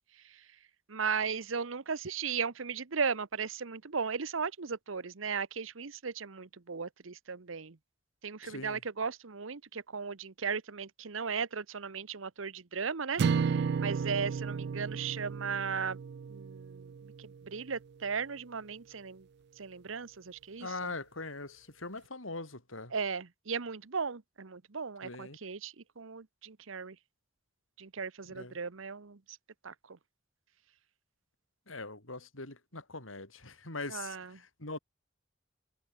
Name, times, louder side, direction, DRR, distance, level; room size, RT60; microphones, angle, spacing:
voice 1, 0.9-7.8 8.2-16.0 16.3-19.3 19.6-20.9 22.9-27.0 27.8-29.2 29.6-30.0 33.9-34.4, right 5 dB, 80° right, 1.0 m, -36 dB
voice 2, 8.4-8.8 20.6-22.9 25.0-25.4 28.3-28.6 31.7-34.8, left 3 dB, 85° left, 6.5 m, -42 dB
sound 1, 13.2-17.5, right 6 dB, 55° right, 0.3 m, -33 dB
head